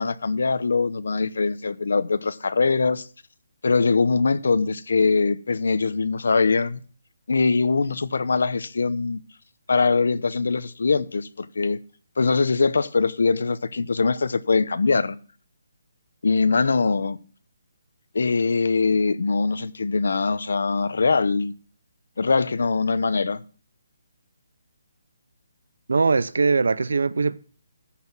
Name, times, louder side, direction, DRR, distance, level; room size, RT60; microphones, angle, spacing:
voice 1, 0.0-3.1 3.6-6.8 7.3-9.2 9.7-11.8 12.2-15.2 16.2-17.2 18.1-21.5 22.2-23.4, left 4 dB, 70° left, 0.8 m, -22 dB
voice 2, 25.9-27.4, right 4 dB, 80° right, 0.7 m, -21 dB
14.0 x 5.9 x 6.1 m
hypercardioid pair, 175°, 0 cm